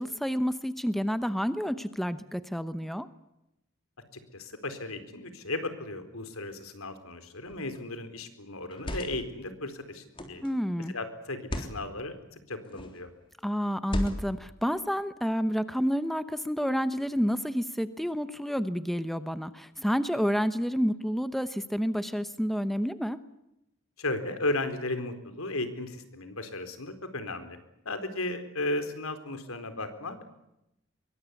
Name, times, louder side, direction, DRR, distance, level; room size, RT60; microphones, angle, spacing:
voice 1, 0.0-3.1 10.4-10.9 13.4-23.2, equal, ahead, 12 dB, 0.9 m, -29 dB
voice 2, 4.3-10.4 10.9-13.1 24.0-27.6 27.8-30.2, left 2 dB, 85° left, 10 dB, 4.2 m, -35 dB
sound 1, 7.5-7.8 8.6-9.3 10.2-10.5 11.4-11.8 12.7-13.0 13.8-14.5, equal, 25° left, 3.5 m, -35 dB
24.5 x 23.0 x 8.4 m, 0.86 s
head